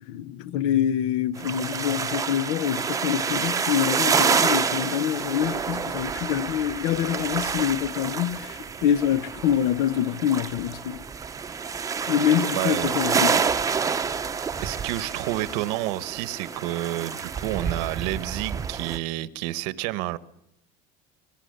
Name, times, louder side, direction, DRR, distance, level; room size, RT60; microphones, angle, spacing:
voice 1, 0.1-11.0 12.1-13.5, left 10 dB, 75° left, 1.0 m, -25 dB
sound 1, 1.4-19.0, right 6 dB, 15° right, 0.8 m, -28 dB
voice 2, 12.5-13.0 14.6-20.2, right 16 dB, 75° right, 1.1 m, -29 dB
25.0 x 19.5 x 6.6 m
cardioid pair, 155°, 21 cm